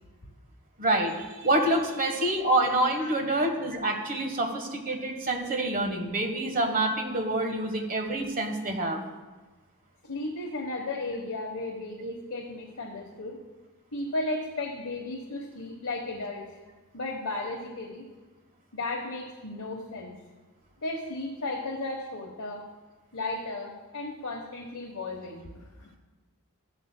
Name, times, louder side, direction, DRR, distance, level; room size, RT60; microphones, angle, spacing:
voice 1, 0.8-9.0 12.0-12.1, right 1 dB, 40° right, 4 dB, 1.3 m, -27 dB
voice 2, 3.0-3.4 10.0-13.4 13.9-16.6 16.9-18.0 18.7-20.1 20.8-22.7 23.1-25.9, left 2 dB, 70° left, -1 dB, 1.2 m, -35 dB
13.5 x 11.0 x 2.2 m, 1.2 s
head